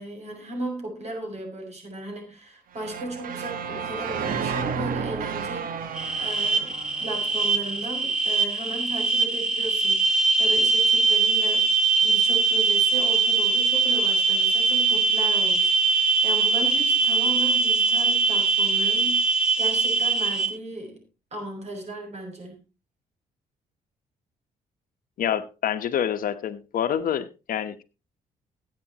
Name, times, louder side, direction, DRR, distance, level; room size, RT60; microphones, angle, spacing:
voice 1, 0.0-11.7 12.0-21.0 21.3-22.6, right 1 dB, 45° right, 6.6 m, -36 dB
sound 1, 2.7-7.8, right 6 dB, 65° right, 1.4 m, -32 dB
sound 2, 5.9-20.5, right 4 dB, 5° right, 2.6 m, -22 dB
voice 2, 25.2-27.8, left 9 dB, 65° left, 1.0 m, -27 dB
20.5 x 8.5 x 2.9 m
cardioid pair, 100°, 15 cm